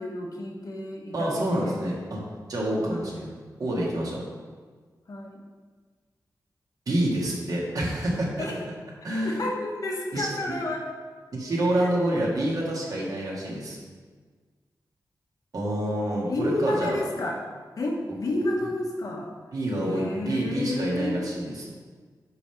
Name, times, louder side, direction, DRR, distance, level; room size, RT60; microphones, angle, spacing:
voice 1, 0.0-1.8 2.9-3.2 5.1-5.4 8.4-8.6 9.2-10.9 11.8-12.0 16.3-17.4 17.8-19.3 19.8-21.3, left 1 dB, 55° left, 0 dB, 1.2 m, -30 dB
voice 2, 1.1-2.2 2.5-4.2 6.9-8.5 9.0-9.4 10.1-10.3 11.3-13.8 15.5-17.0 19.5-21.7, right 1 dB, 60° right, -4 dB, 1.9 m, -27 dB
9.3 x 3.5 x 5.8 m, 1.5 s
wide cardioid pair, 175°, 7 cm